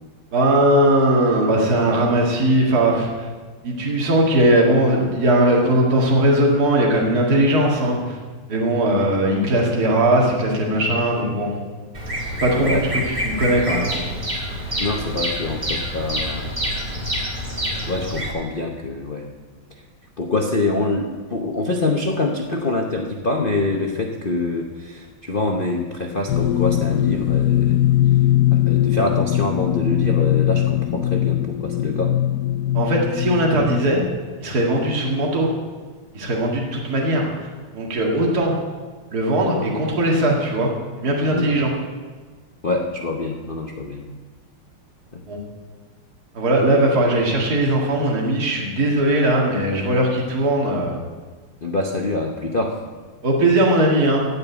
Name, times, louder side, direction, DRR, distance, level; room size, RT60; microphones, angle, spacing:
voice 1, 0.3-3.3 3.6-8.2 8.5-11.5 12.4-12.8 13.2-14.0 32.7-34.0 34.4-35.5 36.1-37.5 37.7-38.6 39.1-40.7 41.0-41.7 45.3-45.4 46.3-50.9 53.2-54.3, right 1 dB, 45° right, -2 dB, 2.4 m, -19 dB
Bird vocalization bird call bird song, 11.9-18.3, equal, 20° right, 2.0 m, -27 dB
voice 2, 14.8-16.5 17.8-19.3 19.7-19.8 20.2-27.8 28.1-28.2 28.5-32.1 41.3-41.5 42.6-44.1 45.1-45.3 51.6-52.8, left 2 dB, 50° left, 1 dB, 0.6 m, -25 dB
sound 1, 26.3-33.8, left 12 dB, 75° left, 0.9 m, -20 dB
16.0 x 5.4 x 8.1 m, 1.4 s
omnidirectional pair, 2.3 m